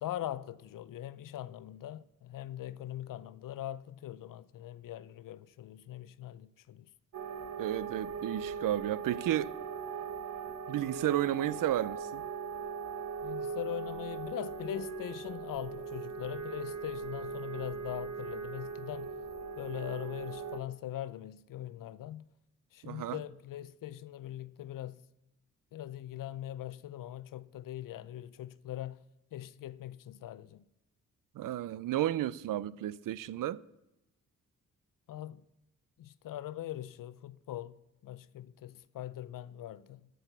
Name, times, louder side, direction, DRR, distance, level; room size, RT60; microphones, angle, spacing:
voice 1, 0.0-6.9 13.2-19.1 19.6-22.3 22.7-25.0 25.7-29.0 29.3-30.6 35.1-35.4 36.0-40.1, left 12 dB, 80° left, 0.6 m, -41 dB
sound 1, 7.1-20.6, right 5 dB, 55° right, 1.1 m, -40 dB
voice 2, 7.6-9.6 10.7-12.2 22.8-23.2 31.3-33.6, right 13 dB, 85° right, 0.5 m, -32 dB
13.5 x 6.3 x 6.6 m
wide cardioid pair, 125°, 32 cm